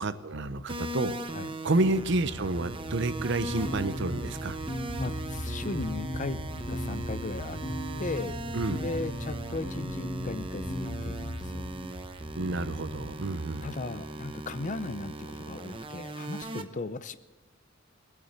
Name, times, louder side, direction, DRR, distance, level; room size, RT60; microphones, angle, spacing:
voice 1, 0.0-1.2 1.6-4.6 8.5-8.8 12.3-13.7, right 2 dB, 60° right, 12 dB, 0.8 m, -29 dB
sound 1, 0.7-16.6, right 1 dB, 25° right, 0.8 m, -40 dB
sound 2, 1.7-13.1, equal, 80° left, 1.8 m, -40 dB
sound 3, 3.3-11.9, equal, 20° left, 1.5 m, -39 dB
voice 2, 4.7-6.4 6.7-7.6 8.0-8.4 8.8-11.7 13.6-17.2, left 3 dB, 40° left, 14 dB, 0.6 m, -37 dB
21.0 x 8.5 x 7.9 m, 1.2 s
head